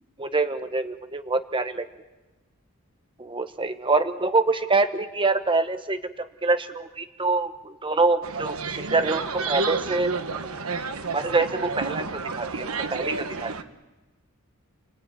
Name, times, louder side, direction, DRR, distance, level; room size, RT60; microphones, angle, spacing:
voice 1, 0.2-1.8 3.2-10.1 11.1-13.5, right 3 dB, 25° right, 9 dB, 1.1 m, -25 dB
sound 1, 8.2-13.6, right 4 dB, 80° right, 1.4 m, -30 dB
30.0 x 18.0 x 9.3 m, 1.1 s
head